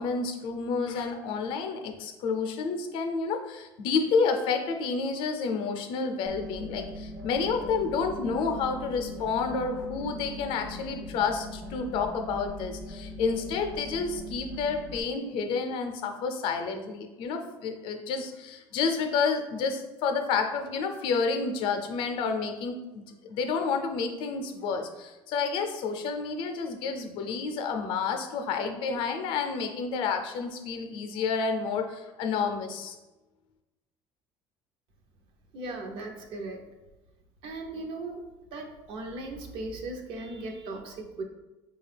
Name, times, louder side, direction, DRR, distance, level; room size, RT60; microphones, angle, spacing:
voice 1, 0.0-23.0 23.3-33.0, left 5 dB, 65° left, 6 dB, 0.5 m, -30 dB
sound 1, 6.3-15.0, left 2 dB, 10° right, 0.4 m, -41 dB
voice 2, 35.5-36.6 37.4-38.2 38.5-41.2, right 2 dB, 60° right, 3 dB, 0.7 m, -37 dB
4.7 x 2.3 x 3.3 m, 1.1 s
cardioid pair, 160°, 10 cm